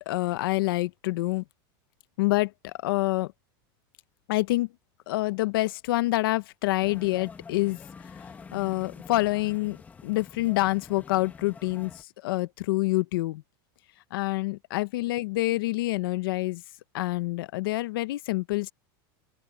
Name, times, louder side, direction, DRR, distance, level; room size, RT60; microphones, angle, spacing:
voice 1, 0.1-1.4 2.2-3.3 4.3-4.7 5.1-7.8 8.5-9.8 10.0-13.4 14.1-16.6 16.9-18.7, left 19 dB, 75° left, 0.8 m, -27 dB
sound 1, 6.8-12.0, left 5 dB, 15° left, 1.8 m, -46 dB
open air
supercardioid pair, 165°, 12 cm